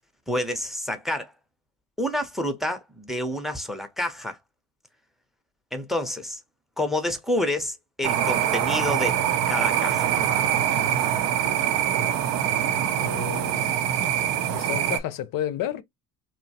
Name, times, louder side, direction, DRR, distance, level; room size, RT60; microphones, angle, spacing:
voice 1, 0.3-1.3 2.0-4.4 5.7-6.4 6.8-9.2 9.5-10.2, left 1 dB, ahead, 0.5 m, -28 dB
sound 1, 8.0-15.0, right 10 dB, 75° right, 0.6 m, -24 dB
voice 2, 13.0-13.7 14.5-15.8, left 11 dB, 45° left, 0.5 m, -31 dB
2.8 x 2.2 x 2.7 m
hypercardioid pair, 75°, 46 cm